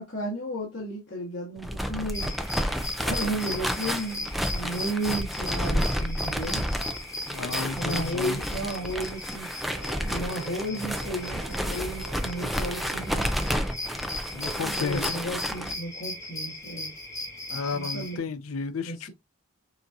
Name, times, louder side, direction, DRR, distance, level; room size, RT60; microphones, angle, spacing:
voice 1, 0.0-2.3 3.0-6.7 7.7-9.5 10.0-13.3 14.6-16.9 17.7-18.2 18.8-19.1, right 1 dB, 55° left, 2.0 m, -33 dB
sound 1, 1.6-15.7, equal, ahead, 0.4 m, -31 dB
sound 2, 2.1-18.2, left 2 dB, 15° left, 1.4 m, -38 dB
voice 2, 7.3-8.4 14.3-15.2 17.5-19.1, left 5 dB, 85° left, 0.5 m, -32 dB
sound 3, 9.7-13.6, right 4 dB, 65° right, 0.8 m, -45 dB
6.9 x 2.9 x 2.5 m
head